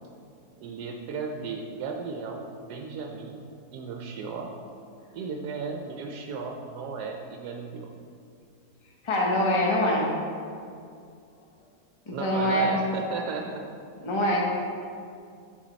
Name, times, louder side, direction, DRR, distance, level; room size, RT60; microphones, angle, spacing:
voice 1, 0.6-3.4 3.7-4.5 5.1-7.9 12.1-13.7 14.2-14.4, right 4 dB, 80° right, 2 dB, 1.2 m, -35 dB
voice 2, 9.0-10.1 12.1-12.7 14.0-14.4, equal, 25° left, -2 dB, 0.7 m, -24 dB
9.3 x 4.1 x 4.0 m, 2.4 s
omnidirectional pair, 1.7 m